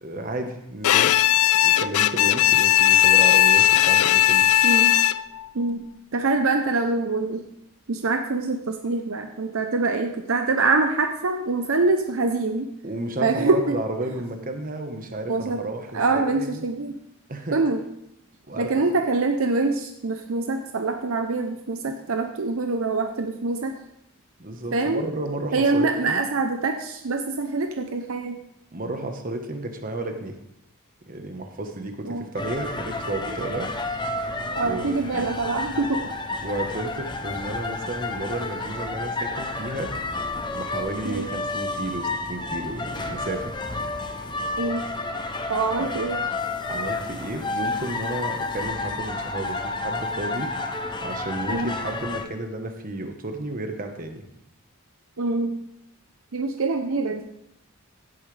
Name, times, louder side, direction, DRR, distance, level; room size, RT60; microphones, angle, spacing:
voice 1, 0.0-1.1 1.4-4.5 12.8-16.7 17.3-17.6 18.5-18.7 24.4-26.2 28.7-30.4 31.1-33.7 34.6-35.3 36.4-39.9 40.5-43.6 45.8-45.9 46.7-50.5 51.0-54.2, right 1 dB, 40° right, 5 dB, 1.2 m, -32 dB
Bowed string instrument, 0.8-5.4, left 12 dB, 80° left, 0.4 m, -17 dB
voice 2, 4.6-5.0 5.5-5.8 6.1-7.5 7.9-12.7 13.2-13.8 15.3-15.6 15.9-16.9 17.5-17.8 18.6-23.8 24.7-25.0 25.5-28.4 32.1-32.3 34.5-36.1 41.0-41.3 44.6-44.8 45.5-46.2 51.5-51.7 55.2-55.6 56.3-57.3, right 3 dB, 65° right, 5 dB, 0.7 m, -24 dB
sound 1, 32.4-52.3, left 2 dB, 20° left, 0.7 m, -30 dB
16.0 x 8.9 x 3.4 m, 0.81 s
head